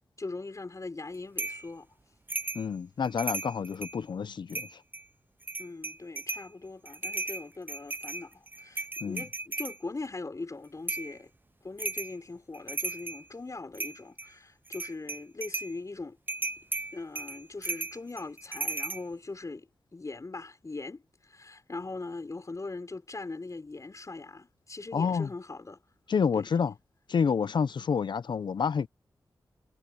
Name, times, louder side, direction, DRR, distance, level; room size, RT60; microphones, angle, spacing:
voice 1, 0.2-2.0 5.6-11.3 11.6-16.2 16.9-25.8 26.4-26.5, left 3 dB, 40° left, 5.4 m, -41 dB
sound 1, 1.4-1.6 2.3-2.7 3.0-4.0 4.5-5.0 5.4-6.5 6.9-9.8 10.9-11.1 11.8-12.2 12.5-13.2 13.7-14.3 14.7-15.7 16.3-19.0, right 2 dB, 25° right, 1.0 m, -35 dB
voice 2, 2.5-4.8 9.0-9.2 24.9-25.3 26.1-26.7 27.1-28.9, left 6 dB, 70° left, 0.9 m, -28 dB
cardioid pair, 40°, 8 cm